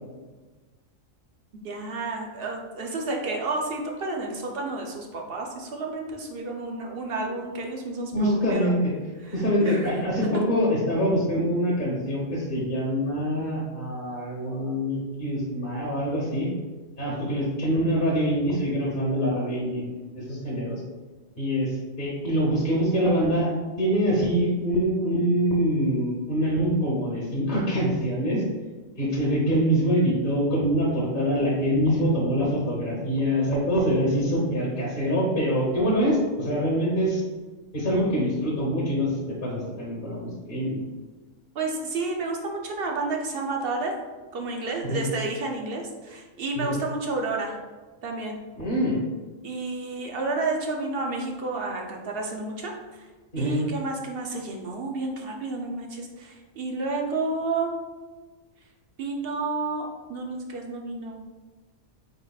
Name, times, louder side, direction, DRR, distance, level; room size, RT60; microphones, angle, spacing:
voice 1, 1.6-8.7 9.2-9.3 9.6-9.9 41.5-43.9 44.3-47.6 48.0-48.4 49.4-53.1 53.4-57.7 59.0-61.2, right 3 dB, 55° right, 1 dB, 0.7 m, -31 dB
voice 2, 8.1-8.9 9.3-16.5 17.0-20.8 21.4-23.5 23.8-28.4 29.0-37.2 37.7-40.8 44.8-45.1 46.5-46.7 48.6-49.0 53.3-53.6, equal, 45° left, -6 dB, 1.1 m, -25 dB
4.7 x 4.0 x 2.3 m, 1.3 s
omnidirectional pair, 1.4 m